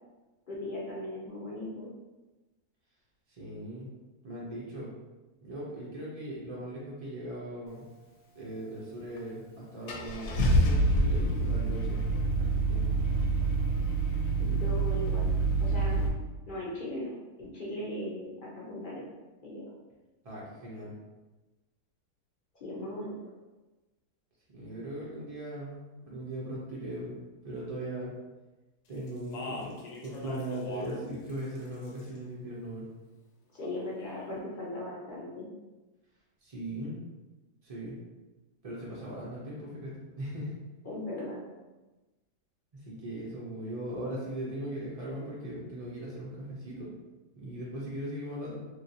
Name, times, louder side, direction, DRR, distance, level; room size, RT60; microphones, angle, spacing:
voice 1, 0.5-1.9 14.4-15.3 15.6-16.1 16.5-19.1 19.4-19.7 22.6-23.1 33.5-35.5 40.8-41.4, left 1 dB, 55° left, -6 dB, 0.6 m, -38 dB
voice 2, 3.4-3.9 4.2-4.9 5.4-7.9 8.3-12.9 20.2-20.9 24.5-27.2 27.4-28.1 28.9-29.8 30.0-32.9 36.4-36.9 37.6-38.0 38.6-40.5 42.7-46.9 47.3-48.6, right 1 dB, 65° right, -6 dB, 0.3 m, -39 dB
Car / Engine starting, 9.2-9.3 9.9-16.1, right 2 dB, 70° left, 1.0 m, -27 dB
Speech, 29.1-31.0 31.3-32.2 33.6-34.3, left 3 dB, 85° left, 1.2 m, -42 dB
3.1 x 2.8 x 2.7 m, 1.1 s
omnidirectional pair, 1.7 m